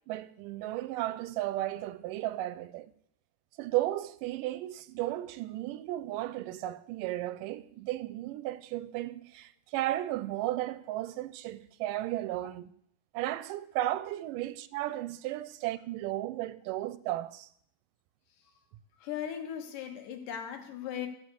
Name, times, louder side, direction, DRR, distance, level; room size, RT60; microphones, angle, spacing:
voice 1, 0.1-2.9 3.6-12.7 13.1-17.5, right 15 dB, 90° right, 2.2 m, -34 dB
voice 2, 19.0-21.1, left 9 dB, 90° left, 2.8 m, -38 dB
14.0 x 4.9 x 8.1 m
omnidirectional pair, 3.7 m